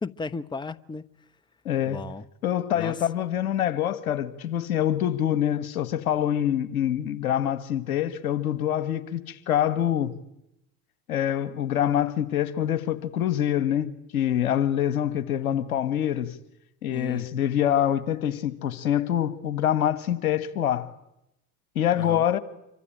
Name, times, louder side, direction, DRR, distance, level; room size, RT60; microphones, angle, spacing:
voice 1, 0.0-1.0 1.8-2.2 2.7-3.0 16.9-17.3 22.0-22.2, left 3 dB, 10° left, 1.0 m, -35 dB
voice 2, 1.7-2.0 2.4-10.1 11.1-16.3 16.8-20.9 21.8-22.4, left 10 dB, 75° left, 1.9 m, -25 dB
26.5 x 24.5 x 8.9 m
hypercardioid pair, 75°, 43 cm